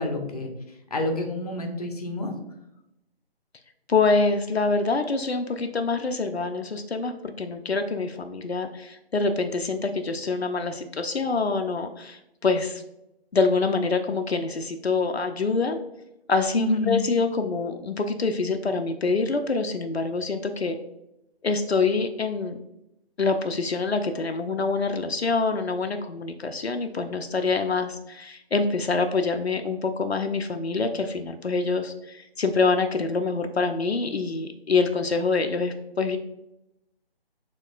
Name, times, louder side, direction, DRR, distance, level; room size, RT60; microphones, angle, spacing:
voice 1, 0.0-2.3 16.5-16.9, left 2 dB, 40° left, 3 dB, 0.7 m, -28 dB
voice 2, 3.9-7.1 7.4-12.8 13.3-15.8 16.3-20.8 21.4-22.6 23.2-36.2, left 4 dB, 80° left, 6 dB, 0.5 m, -25 dB
6.6 x 2.9 x 2.4 m, 0.86 s
figure-of-eight pair, 150°, 32 cm